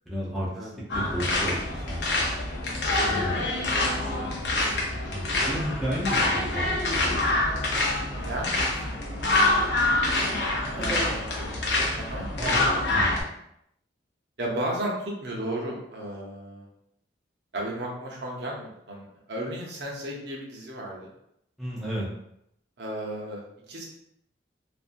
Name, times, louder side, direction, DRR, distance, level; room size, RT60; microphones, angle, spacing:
voice 1, 0.1-2.3 3.0-3.4 5.1-7.4 10.8-11.1 12.4-12.7 12.9-13.3 21.6-22.1, equal, ahead, -6 dB, 0.5 m, -33 dB
sound 1, 0.9-13.2, left 2 dB, 65° left, 0.6 m, -26 dB
voice 2, 3.1-3.6 4.6-5.1 8.2-9.2 10.7-11.5 12.0-12.2 14.4-16.7 17.5-21.1 22.8-23.9, right 1 dB, 65° right, -2 dB, 0.7 m, -34 dB
2.6 x 2.3 x 2.4 m, 0.77 s
head